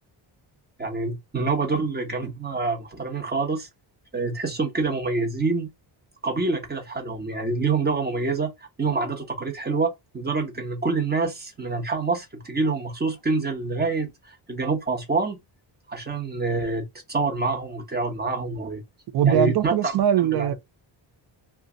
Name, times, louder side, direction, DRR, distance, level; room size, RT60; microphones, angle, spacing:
voice 1, 0.8-3.7 4.1-5.7 6.2-8.5 8.8-15.4 15.9-18.8 19.2-20.0 20.3-20.5, right 3 dB, 20° right, 1.0 m, -26 dB
voice 2, 19.1-20.5, right 10 dB, 55° right, 0.5 m, -21 dB
2.6 x 2.3 x 3.7 m
cardioid pair, 115°, 46 cm